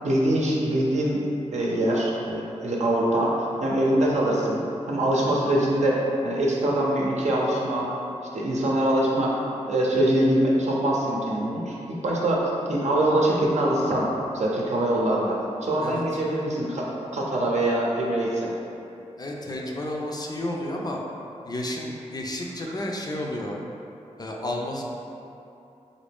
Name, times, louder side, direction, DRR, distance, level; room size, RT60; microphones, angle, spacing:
voice 1, 0.0-1.2 1.5-4.6 4.9-7.9 8.3-18.5, right 1 dB, 65° right, -4 dB, 0.7 m, -24 dB
voice 2, 19.2-21.0 21.4-23.6 24.2-24.8, left 1 dB, 30° left, -1 dB, 0.4 m, -31 dB
3.9 x 2.5 x 3.4 m, 2.7 s
wide cardioid pair, 70°, 13 cm